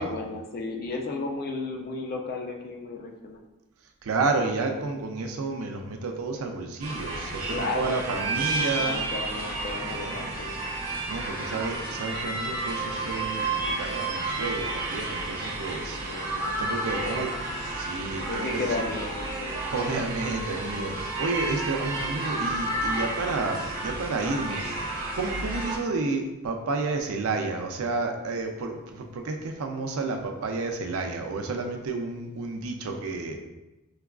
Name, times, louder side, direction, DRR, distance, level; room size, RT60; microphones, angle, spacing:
voice 1, 0.0-3.4 7.5-10.6 16.0-16.6 16.9-17.3 18.3-19.6, left 3 dB, 45° left, 2 dB, 0.4 m, -34 dB
voice 2, 4.0-9.0 9.9-10.4 11.1-16.0 16.6-17.3 17.8-18.7 19.6-33.4, right 3 dB, 80° right, 4 dB, 0.4 m, -31 dB
sound 1, 6.8-25.8, right 2 dB, 45° right, 1.0 m, -31 dB
4.6 x 2.3 x 2.3 m, 0.99 s
head